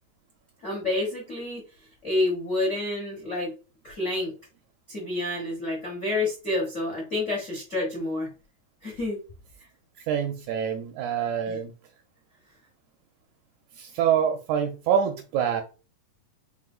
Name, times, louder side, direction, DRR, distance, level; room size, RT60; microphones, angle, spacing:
voice 1, 0.6-1.6 2.0-3.5 3.8-4.3 4.9-8.3 8.8-9.2 11.5-11.6, left 2 dB, 65° left, 0.7 m, -28 dB
voice 2, 10.0-11.7 13.8-15.6, right 8 dB, 80° right, 1.8 m, -26 dB
4.9 x 3.3 x 2.4 m
omnidirectional pair, 3.8 m